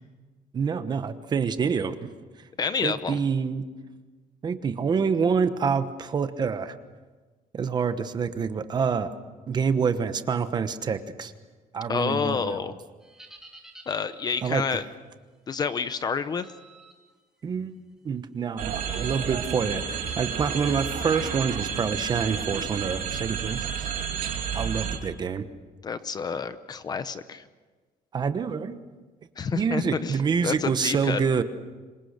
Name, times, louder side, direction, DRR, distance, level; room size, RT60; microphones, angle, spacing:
voice 1, 0.5-2.0 2.8-3.6 4.4-6.8 7.5-9.1 9.5-11.3 11.7-12.6 14.4-14.8 17.4-17.7 18.0-23.9 24.5-25.4 28.1-28.8 29.5-31.4, right 6 dB, 30° right, 10 dB, 1.1 m, -27 dB
voice 2, 2.6-3.2 11.9-12.7 13.9-14.8 15.5-16.4 25.8-27.4 29.4-30.2 30.4-31.2, left 5 dB, 25° left, 12 dB, 0.8 m, -29 dB
sound 1, 13.0-14.7 16.4-16.9 17.4-17.7 18.9-19.4, right 2 dB, 5° right, 3.0 m, -50 dB
sound 2, 18.6-25.0, right 7 dB, 65° right, 2.8 m, -31 dB
26.5 x 23.0 x 6.7 m, 1.3 s
cardioid pair, 175°, 15 cm